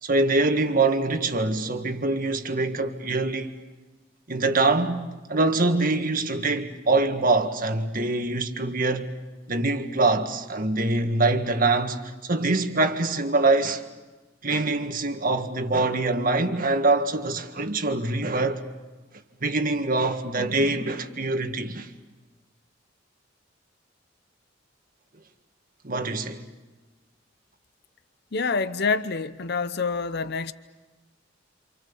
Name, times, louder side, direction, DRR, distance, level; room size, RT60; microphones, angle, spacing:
voice 1, 0.0-3.5 4.3-5.0 5.3-9.1 9.5-13.8 14.4-18.6 19.4-21.9 25.8-26.4, right 2 dB, 50° right, 1.8 m, -24 dB
voice 2, 28.3-30.5, left 4 dB, 60° left, 0.8 m, -27 dB
28.5 x 27.5 x 7.1 m
head